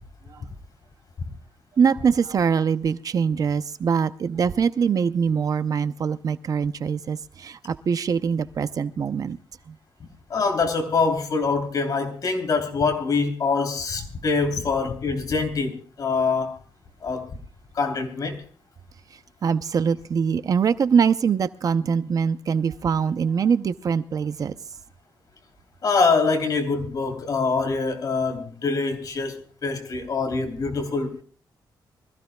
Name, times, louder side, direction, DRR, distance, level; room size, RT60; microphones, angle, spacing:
voice 1, 1.8-9.4 9.7-9.8 19.4-24.5, right 6 dB, 50° right, 0.6 m, -23 dB
voice 2, 10.3-16.6 17.0-17.3 17.7-18.4 25.8-31.2, left 4 dB, 55° left, 3.2 m, -24 dB
25.0 x 15.0 x 2.3 m
wide cardioid pair, 135°, 8 cm